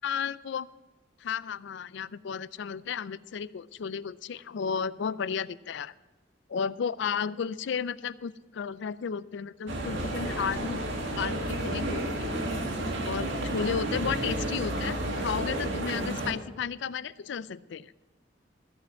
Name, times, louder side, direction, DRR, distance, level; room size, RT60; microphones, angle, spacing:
voice 1, 0.0-0.7 1.2-5.9 6.5-10.8 11.2-12.3 13.0-17.9, left 6 dB, 65° left, 18 dB, 0.4 m, -33 dB
sound 1, 9.7-16.3, right 1 dB, 70° right, 1.7 m, -31 dB
14.0 x 5.9 x 7.4 m, 1.2 s
head